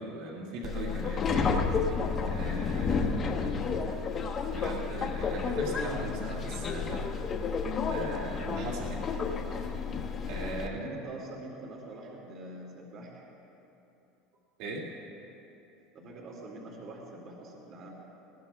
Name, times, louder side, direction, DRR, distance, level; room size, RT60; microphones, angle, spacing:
voice 1, 0.0-1.6 2.2-3.6 4.5-7.1 7.9-9.1 9.7-9.9 10.2-10.9 14.6-14.9, right 2 dB, 65° right, -3 dB, 2.2 m, -39 dB
Subway metro underground, 0.6-10.7, left 5 dB, 30° left, 1.0 m, -31 dB
voice 2, 10.6-13.2 15.9-17.9, right 2 dB, 45° right, -2 dB, 2.3 m, -45 dB
19.5 x 19.0 x 2.3 m, 3.0 s
supercardioid pair, 125°, 0 cm